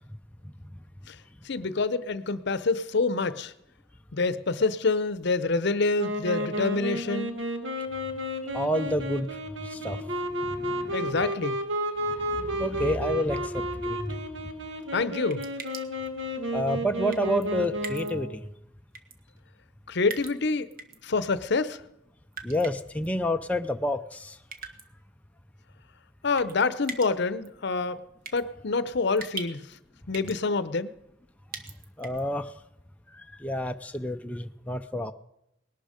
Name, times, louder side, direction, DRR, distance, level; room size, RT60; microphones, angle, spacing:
voice 1, 1.4-3.5 4.1-7.4 10.9-11.6 14.9-15.5 19.9-20.7 21.0-21.8 26.2-28.0 28.3-29.7 30.1-30.9, left 3 dB, 60° left, 0.7 m, -27 dB
Wind instrument woodwind instrument, 6.0-18.4, equal, 70° right, 1.7 m, -32 dB
voice 2, 8.5-11.1 12.0-14.2 16.5-18.5 22.4-24.4 32.0-32.5 33.1-35.1, equal, 5° left, 0.5 m, -30 dB
sound 1, 15.3-16.1 17.1-17.5 17.8-18.1 18.9-19.2 20.1-21.0 22.3-23.1 24.5-24.9 26.4-26.6 26.8-27.1 27.4-27.5 28.3-28.4 29.2-29.8 30.1-30.4 31.5-32.2, right 5 dB, 50° right, 1.4 m, -40 dB
19.5 x 12.0 x 5.1 m
head